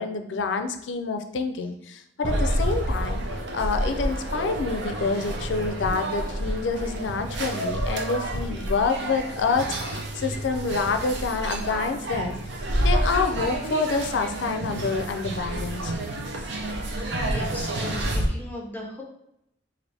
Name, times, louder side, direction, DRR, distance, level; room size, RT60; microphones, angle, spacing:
voice 1, 0.0-3.2 3.5-12.4 12.7-15.9, left 4 dB, 80° left, 7 dB, 0.4 m, -27 dB
sound 1, 2.2-18.3, right 1 dB, 70° right, 0.6 m, -29 dB
voice 2, 17.2-19.0, left 1 dB, 10° left, -2 dB, 0.7 m, -37 dB
4.1 x 2.5 x 3.3 m, 0.79 s
head